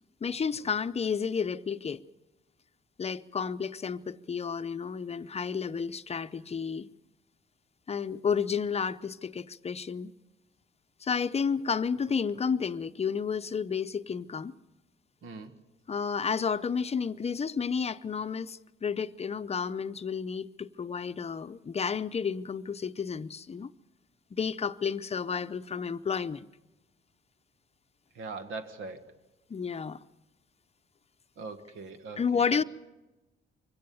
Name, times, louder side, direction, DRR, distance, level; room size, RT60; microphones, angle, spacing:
voice 1, 0.2-2.0 3.0-6.9 7.9-10.1 11.0-14.5 15.9-23.7 24.3-26.5 29.5-30.0 32.2-32.6, left 6 dB, 30° left, 0.6 m, -31 dB
voice 2, 15.2-15.5 28.1-29.1 31.4-32.6, right 4 dB, 80° right, 1.7 m, -41 dB
24.0 x 17.0 x 7.0 m
cardioid pair, 90°, 20 cm